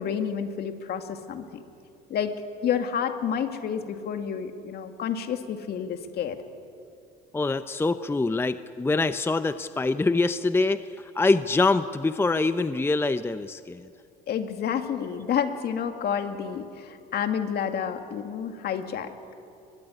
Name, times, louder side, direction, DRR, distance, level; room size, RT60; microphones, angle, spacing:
voice 1, 0.0-1.6 2.1-2.4 2.6-6.4 14.3-19.1, left 8 dB, 55° left, 6 dB, 2.2 m, -29 dB
voice 2, 7.3-13.9, left 3 dB, 10° left, 11 dB, 0.7 m, -25 dB
23.0 x 21.0 x 9.8 m, 2.5 s
supercardioid pair, 90°, 19 cm